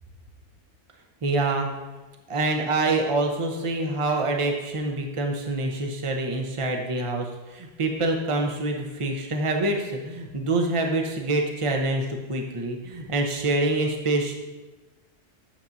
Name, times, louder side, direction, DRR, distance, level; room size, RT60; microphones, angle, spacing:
voice 1, 1.2-1.7 2.3-14.3, right 2 dB, 30° right, 2 dB, 0.8 m, -26 dB
10.0 x 7.1 x 2.7 m, 1.1 s
omnidirectional pair, 1.2 m